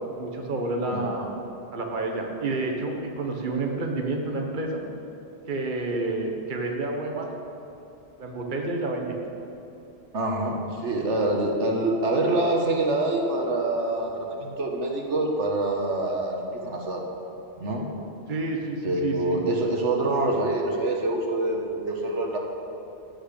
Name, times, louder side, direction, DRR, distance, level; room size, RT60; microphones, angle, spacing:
voice 1, 0.1-1.3 1.7-4.8 5.5-7.3 8.2-9.2 18.3-19.5, right 2 dB, 45° right, 1 dB, 1.4 m, -29 dB
voice 2, 10.1-17.0 17.6-17.9 18.8-22.4, right 2 dB, 85° right, 1 dB, 1.7 m, -26 dB
13.5 x 6.4 x 8.3 m, 2.9 s
omnidirectional pair, 1.2 m